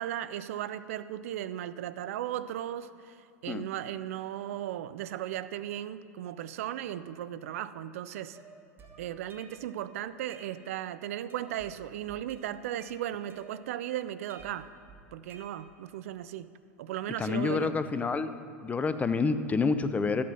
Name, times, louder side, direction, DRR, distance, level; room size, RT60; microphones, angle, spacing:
voice 1, 0.0-3.2 3.4-8.4 9.0-14.7 15.1-16.5 16.8-17.7, right 12 dB, 60° right, 15 dB, 0.4 m, -36 dB
sound 1, 8.3-9.8 10.1-10.9 11.3-11.8 12.1-13.9 14.3-15.9, right 3 dB, 25° right, 1.8 m, -54 dB
voice 2, 17.2-18.3 18.6-20.2, left 4 dB, 15° left, 11 dB, 0.6 m, -28 dB
14.0 x 8.5 x 5.6 m, 2.6 s
figure-of-eight pair, 85°, 8 cm